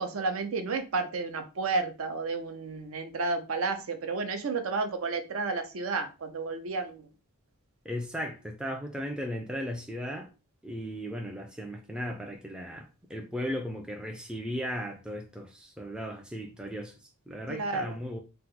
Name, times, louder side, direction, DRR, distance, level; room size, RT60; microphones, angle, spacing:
voice 1, 0.0-7.1 17.5-18.0, right 3 dB, 75° right, 0.5 m, -31 dB
voice 2, 7.9-10.3 10.6-16.9 17.3-18.2, equal, 5° right, 0.3 m, -36 dB
2.9 x 2.1 x 3.6 m
head